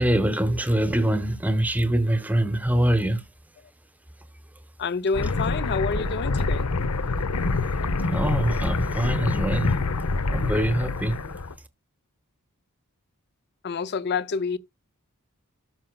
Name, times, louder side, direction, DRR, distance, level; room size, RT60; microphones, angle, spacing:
voice 1, 0.0-3.2 6.4-6.5 8.0-9.8 10.3-11.3, right 1 dB, 5° right, 0.9 m, -24 dB
voice 2, 4.8-6.7 13.6-14.6, left 4 dB, 50° left, 0.5 m, -28 dB
sound 1, 5.1-11.5, left 3 dB, 85° left, 0.8 m, -26 dB
13.0 x 5.7 x 2.2 m
head